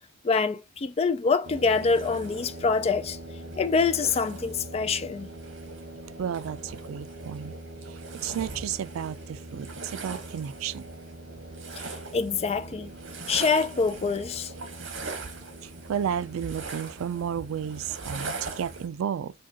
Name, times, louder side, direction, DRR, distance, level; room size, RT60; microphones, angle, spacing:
voice 1, 0.2-3.2 3.6-5.3 11.8-12.9 13.3-14.5, left 4 dB, 30° left, 0.3 m, -25 dB
sound 1, 1.4-18.9, right 2 dB, 60° right, 1.1 m, -40 dB
voice 2, 6.0-7.6 7.9-10.9 15.6-19.3, right 8 dB, 85° right, 0.3 m, -33 dB
4.9 x 2.2 x 2.8 m
head